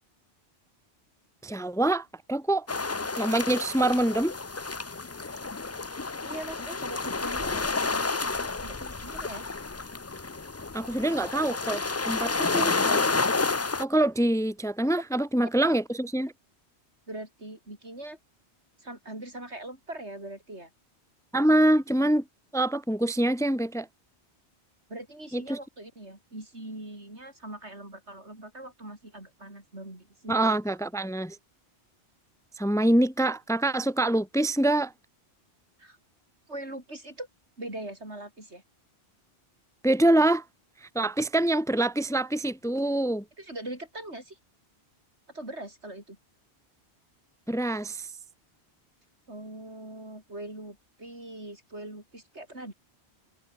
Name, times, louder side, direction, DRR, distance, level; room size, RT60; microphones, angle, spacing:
voice 1, 1.4-2.7 3.2-4.3 10.7-13.1 13.8-16.3 21.3-22.2 22.5-23.9 25.3-25.6 30.3-31.4 32.6-34.9 39.8-40.4 40.8-43.2 47.5-48.1, right 1 dB, 5° left, 1.0 m, -25 dB
sound 1, 2.7-13.9, left 3 dB, 25° left, 0.3 m, -30 dB
voice 2, 6.2-9.5 15.6-15.7 17.1-18.2 18.8-20.7 24.9-30.4 35.8-36.0 36.5-37.3 37.6-38.6 43.4-44.4 45.3-46.2 49.3-52.7, right 1 dB, 80° right, 7.6 m, -41 dB
omnidirectional pair, 1.1 m